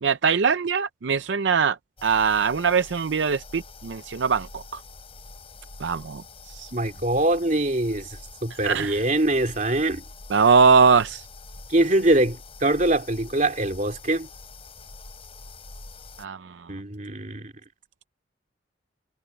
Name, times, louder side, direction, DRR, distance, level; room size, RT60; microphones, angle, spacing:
voice 1, 0.0-4.8 5.8-6.7 8.6-9.0 10.3-11.3 16.2-16.7, right 5 dB, 75° right, 0.5 m, -22 dB
sound 1, 2.0-16.3, left 3 dB, 30° left, 7.3 m, -45 dB
voice 2, 6.7-8.1 8.4-10.0 11.7-14.3 16.7-17.5, right 1 dB, 40° right, 2.7 m, -23 dB
head